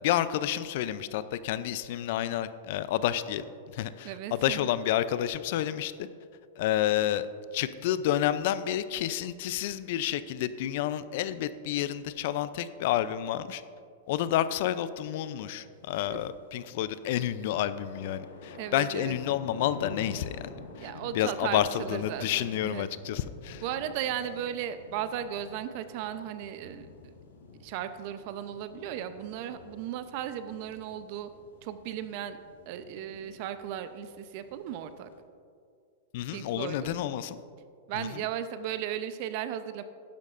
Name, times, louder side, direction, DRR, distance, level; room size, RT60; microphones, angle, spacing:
voice 1, 0.0-3.4 3.7-5.9 6.6-7.3 7.5-13.6 14.1-23.6 36.1-37.4 37.9-38.2, left 12 dB, 60° left, 14 dB, 0.4 m, -30 dB
voice 2, 4.0-4.7 16.1-16.2 18.6-19.1 20.8-22.9 23.6-27.1 27.6-31.3 31.6-32.4 32.7-35.1 36.3-37.0 37.9-39.8, right 10 dB, 50° right, 11 dB, 0.6 m, -36 dB
sound 1, 15.7-35.2, left 3 dB, 85° left, 1.7 m, -49 dB
12.0 x 10.5 x 2.5 m, 2.3 s
hypercardioid pair, 125°, 0 cm